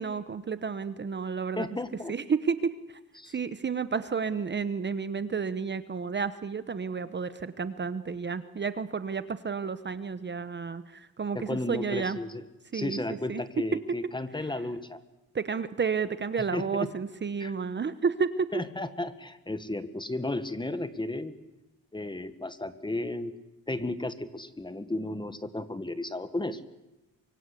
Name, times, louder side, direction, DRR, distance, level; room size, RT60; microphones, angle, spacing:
voice 1, 0.0-1.7 2.1-3.0 3.3-12.2 12.7-13.0 13.3-13.4 15.3-18.5, right 5 dB, 30° right, 13 dB, 1.0 m, -31 dB
voice 2, 1.6-2.1 3.2-3.3 11.3-12.4 12.7-15.0 16.5-16.9 17.4-17.5 18.5-21.4 21.9-23.3 23.7-26.6, left 2 dB, 15° left, 12 dB, 1.5 m, -34 dB
24.5 x 23.5 x 8.4 m, 1.0 s
cardioid pair, 105°, 35 cm